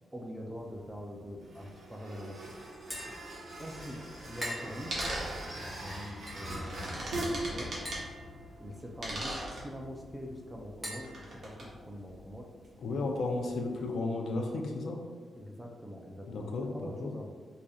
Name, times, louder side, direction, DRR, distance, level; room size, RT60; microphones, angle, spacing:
voice 1, 0.1-2.6 3.6-5.0 5.5-7.7 8.6-9.3 9.6-11.1 11.4-12.5 15.4-17.3, equal, 10° right, 0 dB, 0.4 m, -44 dB
sound 1, 0.5-13.9, right 1 dB, 75° right, 1.0 m, -43 dB
Tap, 2.7-12.2, equal, 10° left, 0.9 m, -47 dB
sound 2, 3.8-3.9 4.9-5.4 6.5-8.0 9.0-9.6 11.0-11.6, right 1 dB, 55° right, 1.0 m, -37 dB
voice 2, 12.8-15.0 16.3-17.1, left 3 dB, 70° left, 1 dB, 0.5 m, -33 dB
4.8 x 2.7 x 2.3 m, 1.5 s
wide cardioid pair, 160°, 0 cm